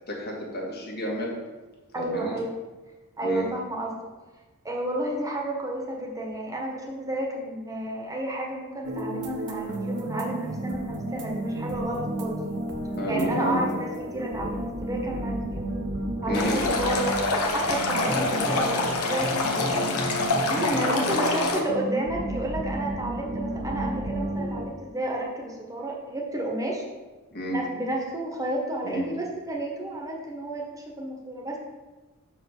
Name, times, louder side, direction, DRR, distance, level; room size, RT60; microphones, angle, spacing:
voice 1, 0.1-1.3 2.0-2.3 3.2-3.5 13.0-13.7 16.3-16.6 18.0-18.8 19.5-19.9 20.8-21.6 27.3-27.6 28.8-29.1, equal, 45° left, -2 dB, 1.8 m, -31 dB
voice 2, 1.9-2.5 3.2-4.0 4.6-12.4 13.1-15.7 16.2-17.2 17.5-19.8 20.5-26.8 27.5-31.6, right 1 dB, 15° right, -1 dB, 1.3 m, -31 dB
sound 1, 8.8-24.6, right 1 dB, 55° right, 1.0 m, -32 dB
Stream, 16.3-21.6, left 3 dB, 85° left, 1.1 m, -26 dB
6.0 x 4.8 x 6.5 m, 1.2 s
head